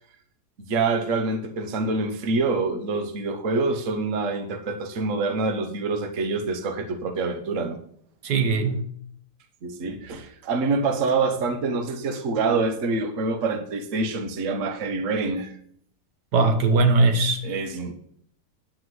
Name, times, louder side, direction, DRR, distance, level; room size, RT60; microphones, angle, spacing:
voice 1, 0.6-7.8 9.6-15.5 17.4-17.9, right 3 dB, 55° right, 7 dB, 1.4 m, -26 dB
voice 2, 8.2-8.8 16.3-17.4, right 3 dB, 85° right, 7 dB, 1.7 m, -20 dB
9.4 x 4.9 x 7.8 m, 0.63 s
omnidirectional pair, 1.8 m